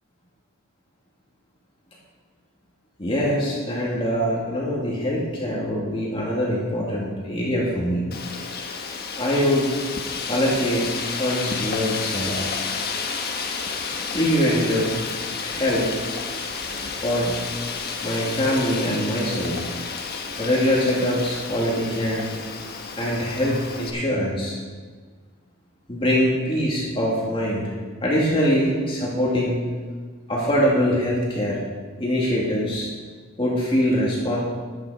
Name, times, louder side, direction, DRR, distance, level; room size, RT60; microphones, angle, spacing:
voice 1, 3.0-8.1 9.2-9.7 10.3-12.4 14.1-15.0 15.4-15.9 16.9-17.4 18.0-19.6 20.4-22.3 23.0-24.6 25.9-27.6 28.0-29.6 30.3-31.6 32.0-32.9 33.4-34.4, equal, 25° left, -5 dB, 2.3 m, -23 dB
Wind, 8.1-23.9, left 5 dB, 50° left, 1.3 m, -31 dB
12.5 x 9.8 x 4.9 m, 1.5 s
head